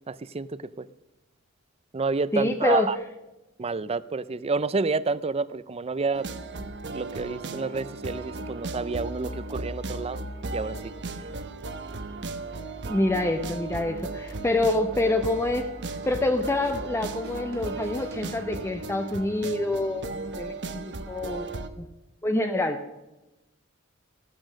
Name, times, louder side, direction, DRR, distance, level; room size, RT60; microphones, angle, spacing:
voice 1, 0.1-0.9 1.9-3.0 3.6-6.3 6.9-10.2 10.5-10.9, right 4 dB, 30° right, 17 dB, 0.5 m, -29 dB
voice 2, 2.3-2.9 12.9-15.7 16.0-20.1 20.3-21.5 21.8-21.9 22.2-22.8, left 2 dB, 10° left, 6 dB, 0.6 m, -26 dB
sound 1, 6.1-21.7, right 3 dB, 60° right, 1.0 m, -36 dB
sound 2, 16.0-16.8 17.1-18.9, right 1 dB, 75° right, 3.2 m, -47 dB
15.0 x 12.5 x 6.4 m, 1.0 s
head